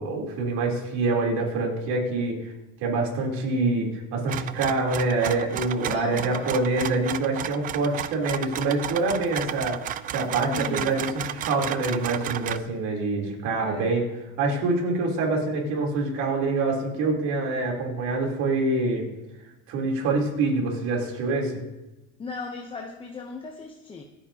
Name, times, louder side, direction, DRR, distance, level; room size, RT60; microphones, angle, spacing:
voice 1, 0.0-2.5 2.8-9.8 10.1-14.0 14.4-19.0 19.7-21.6, right 3 dB, 65° right, -1 dB, 3.6 m, -26 dB
sound 1, 4.3-12.6, right 11 dB, 30° right, 0.3 m, -33 dB
voice 2, 5.9-6.7 10.5-11.0 13.6-14.0 22.2-24.0, left 4 dB, 15° left, 2 dB, 0.8 m, -37 dB
26.0 x 8.8 x 2.9 m, 1.1 s
cardioid pair, 150°, 30 cm